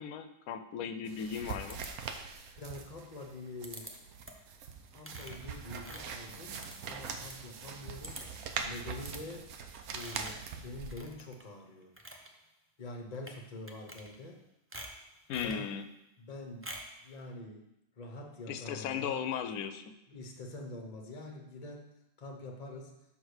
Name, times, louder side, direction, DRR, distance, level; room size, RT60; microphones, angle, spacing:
voice 1, 0.0-1.8 15.3-15.8 18.5-19.8, left 8 dB, 80° left, 9 dB, 1.1 m, -36 dB
sound 1, 1.1-11.0, right 6 dB, 75° right, 1.2 m, -43 dB
sound 2, 1.7-2.4 3.6-3.9 4.2-4.5 5.0-7.4 7.7-7.8 8.0-8.5 9.0-9.2 9.9-10.5 10.9-11.5 11.8-12.3 13.1-13.4 13.7-14.4 14.7-15.6 16.6-17.0, right 1 dB, 20° right, 0.4 m, -47 dB
voice 2, 2.6-3.9 4.9-8.3 8.6-9.5 9.9-11.9 12.8-14.4 15.4-15.6 16.2-16.7 17.0-17.7 18.0-19.3 20.1-21.9 22.2-23.0, left 2 dB, 35° left, 3 dB, 0.8 m, -45 dB
5.8 x 4.9 x 6.3 m, 0.88 s
omnidirectional pair, 1.6 m